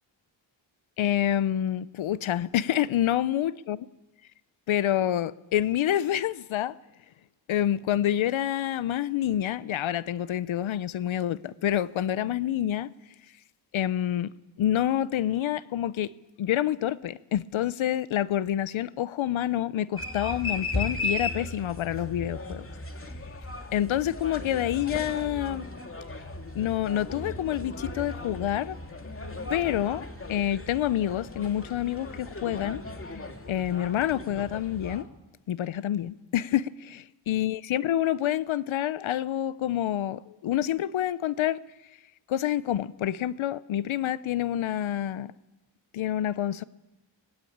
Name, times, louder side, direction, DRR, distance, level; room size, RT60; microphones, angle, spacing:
voice 1, 1.0-3.8 4.7-6.7 7.5-12.9 13.7-14.3 14.6-16.1 16.4-22.7 23.7-25.7 26.5-28.8 29.5-30.0 30.3-32.8 33.5-35.1 35.5-41.6 42.3-45.3 45.9-46.6, left 11 dB, 85° left, 0.8 m, -27 dB
sound 1, 20.0-35.0, left 2 dB, 30° left, 2.6 m, -36 dB
24.0 x 20.0 x 8.7 m
cardioid pair, 80°, 46 cm